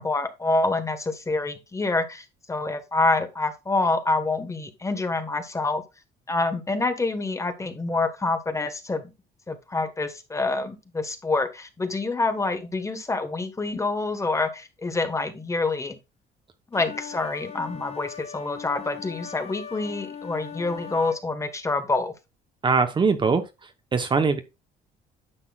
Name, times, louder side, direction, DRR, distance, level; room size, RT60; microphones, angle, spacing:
voice 1, 0.0-5.8 6.3-9.1 9.5-16.0 16.7-22.1, left 3 dB, 15° left, 1.4 m, -27 dB
sound 1, 16.7-21.2, left 7 dB, 35° left, 1.2 m, -39 dB
voice 2, 22.6-24.4, right 5 dB, 30° right, 1.0 m, -22 dB
9.9 x 6.8 x 2.4 m
cardioid pair, 110°, 17 cm